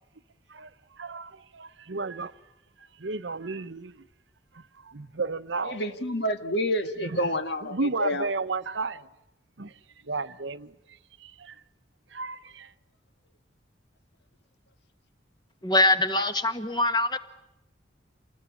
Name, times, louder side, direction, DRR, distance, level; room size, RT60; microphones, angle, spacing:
voice 1, 1.0-2.3 3.0-3.9 4.5-5.8 7.0-7.3 7.6-9.1 9.6-9.7 10.1-10.7 11.2-11.6 12.1-12.7, right 3 dB, 80° right, 0.9 m, -33 dB
voice 2, 5.7-8.3, left 1 dB, 65° left, 1.8 m, -28 dB
voice 3, 15.6-17.2, left 2 dB, 25° left, 1.6 m, -23 dB
28.5 x 20.0 x 8.8 m
head